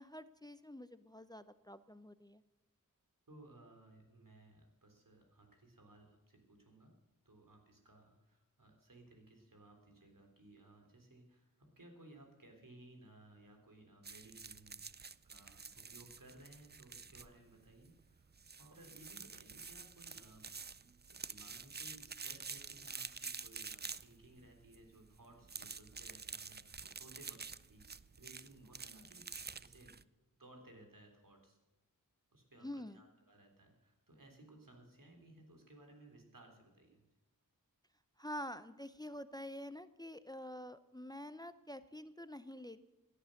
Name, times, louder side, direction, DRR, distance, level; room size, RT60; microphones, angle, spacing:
voice 1, 0.0-2.4 32.6-33.0 38.2-42.9, left 1 dB, 10° left, 13 dB, 0.6 m, -47 dB
voice 2, 3.3-6.9 7.3-18.3 18.6-27.9 28.2-30.0 30.4-31.6 32.3-37.1, right 1 dB, 70° right, 3 dB, 3.8 m, -60 dB
sound 1, 14.0-30.0, right 5 dB, 30° right, 0.5 m, -49 dB
17.0 x 10.0 x 6.5 m, 1.1 s
wide cardioid pair, 45°, 34 cm